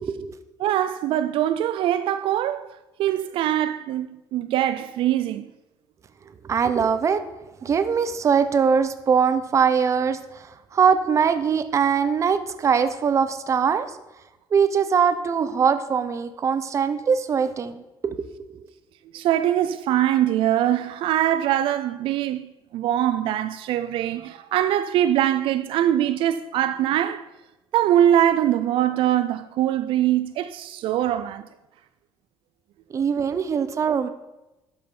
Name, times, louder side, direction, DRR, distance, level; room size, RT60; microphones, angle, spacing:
voice 1, 0.0-0.3 6.5-7.2 7.6-13.9 14.5-18.6 32.9-34.1, right 6 dB, 35° right, 0.7 m, -22 dB
voice 2, 0.6-5.5 19.1-27.3 27.7-31.5, right 11 dB, 70° right, 0.4 m, -23 dB
12.0 x 5.5 x 5.3 m
cardioid pair, 145°, 9 cm